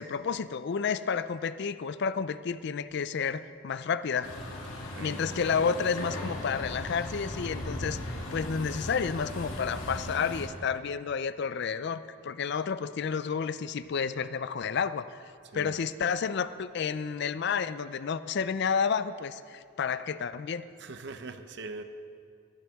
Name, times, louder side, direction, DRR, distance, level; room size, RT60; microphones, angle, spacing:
voice 1, 0.0-4.3 5.0-15.0 15.5-20.7, left 6 dB, 55° left, 14 dB, 0.4 m, -31 dB
Truck, 4.2-10.5, left 1 dB, 90° left, 2.3 m, -38 dB
voice 2, 4.7-5.2 15.4-15.9 20.8-21.8, right 3 dB, 55° right, 9 dB, 0.6 m, -42 dB
20.5 x 9.0 x 3.5 m, 2.3 s
head